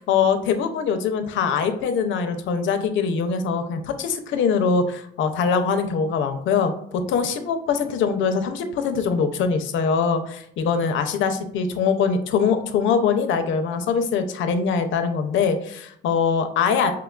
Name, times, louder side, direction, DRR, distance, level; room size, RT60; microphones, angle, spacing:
voice 1, 0.0-16.9, left 6 dB, 75° left, 8 dB, 0.5 m, -23 dB
4.6 x 2.2 x 2.3 m, 0.71 s
cardioid pair, 90°, 20 cm